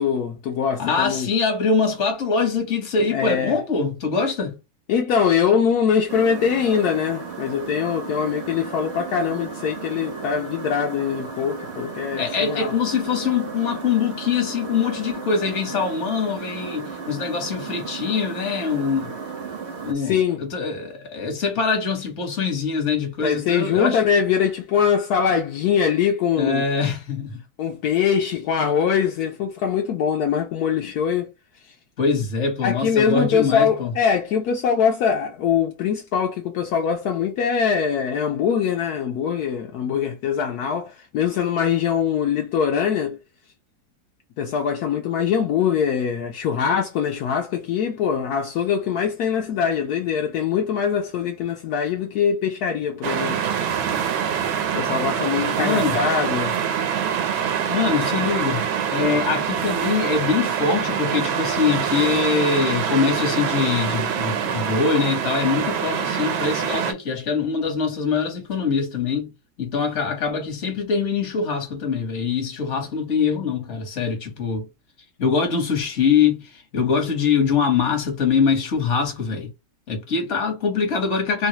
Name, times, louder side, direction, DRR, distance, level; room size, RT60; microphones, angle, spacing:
voice 1, 0.0-1.3 3.1-3.6 4.9-12.7 20.0-20.5 23.2-26.6 27.6-31.3 31.6-31.7 32.6-43.2 44.4-53.4 54.7-56.6, left 7 dB, 75° left, 0.9 m, -22 dB
voice 2, 0.8-4.6 12.2-19.2 19.8-24.0 26.4-27.4 32.0-33.9 55.6-56.0 57.7-69.3 69.6-74.7 75.2-79.5 79.9-81.5, left 5 dB, 45° left, 1.2 m, -23 dB
sound 1, 6.1-19.9, right 5 dB, 65° right, 0.6 m, -34 dB
sound 2, 53.0-66.9, right 8 dB, 90° right, 1.4 m, -25 dB
3.1 x 2.3 x 2.8 m
omnidirectional pair, 2.1 m